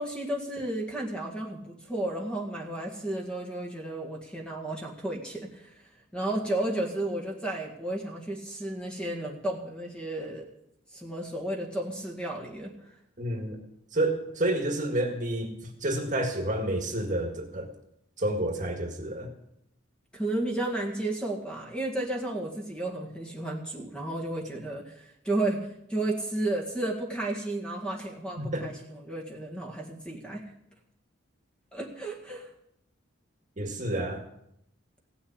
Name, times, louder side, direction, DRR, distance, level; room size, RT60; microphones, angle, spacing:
voice 1, 0.0-5.7 6.1-10.5 10.9-12.7 20.1-30.4 31.7-32.5, right 1 dB, 5° left, 0 dB, 1.9 m, -33 dB
voice 2, 13.2-13.6 13.9-15.5 15.8-17.7 18.2-19.3 28.4-28.6 33.6-34.2, right 1 dB, 40° right, 3 dB, 1.9 m, -29 dB
16.5 x 7.1 x 8.7 m, 0.78 s
head